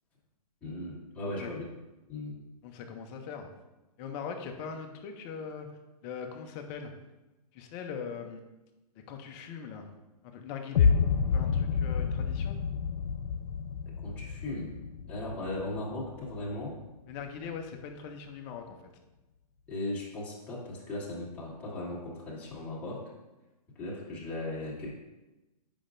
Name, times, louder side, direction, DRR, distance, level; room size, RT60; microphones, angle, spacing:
voice 1, 0.6-1.7 2.1-2.3 14.0-14.7 15.1-16.8 19.7-23.0 23.8-24.9, left 2 dB, 5° left, -8 dB, 1.6 m, -37 dB
voice 2, 2.6-3.5 4.0-5.7 6.0-6.9 7.5-8.4 9.1-9.9 10.2-10.9 11.3-12.6 17.1-18.9, left 6 dB, 20° left, 4 dB, 0.6 m, -41 dB
sound 1, 10.7-16.8, left 6 dB, 75° left, 0.4 m, -29 dB
8.4 x 5.3 x 2.5 m, 1.0 s
hypercardioid pair, 160°, 21 cm